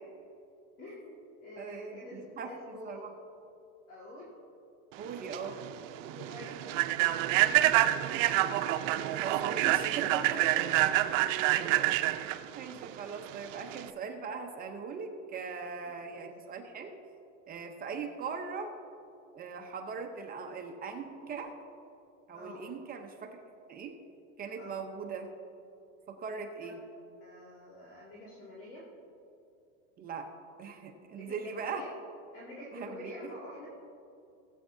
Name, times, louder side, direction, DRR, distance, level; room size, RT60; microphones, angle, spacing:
voice 1, 0.8-3.1 3.9-4.4 5.9-8.3 8.7-9.2 10.3-11.0 11.7-11.8 15.8-16.3 22.3-22.7 24.6-24.8 26.6-26.7 27.1-28.9 31.2-31.9 32.3-33.7, left 1 dB, 35° left, -6 dB, 2.1 m, -48 dB
voice 2, 1.6-2.5 2.8-3.1 5.0-5.6 9.0-10.5 12.0-16.9 17.5-18.7 19.3-21.5 22.3-23.4 23.7-23.9 24.4-25.3 26.1-26.8 30.0-30.3 30.6-31.8 32.7-33.1, right 5 dB, 25° right, 4 dB, 0.7 m, -40 dB
Human voice / Train, 5.0-13.9, right 14 dB, 70° right, 0.6 m, -28 dB
18.0 x 8.1 x 2.7 m, 2.6 s
supercardioid pair, 150°, 39 cm